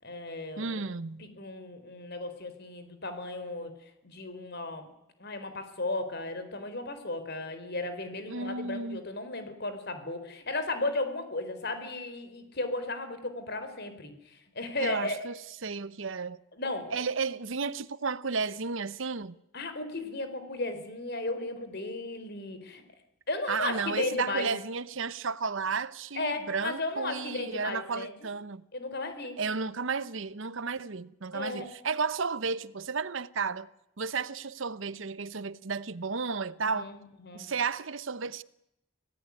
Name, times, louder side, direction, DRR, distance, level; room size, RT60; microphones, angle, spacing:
voice 1, 0.0-0.8 1.2-4.9 5.2-15.3 16.6-17.0 19.5-22.8 23.3-24.5 26.1-28.3 28.7-29.4 31.3-31.7 36.6-37.5, left 2 dB, 50° left, 4.3 m, -35 dB
voice 2, 0.6-1.2 8.3-9.0 14.8-16.4 16.9-19.3 23.5-28.7 29.4-33.7 34.0-36.9 37.3-38.4, right 5 dB, 65° right, 0.9 m, -33 dB
26.0 x 18.0 x 9.7 m
head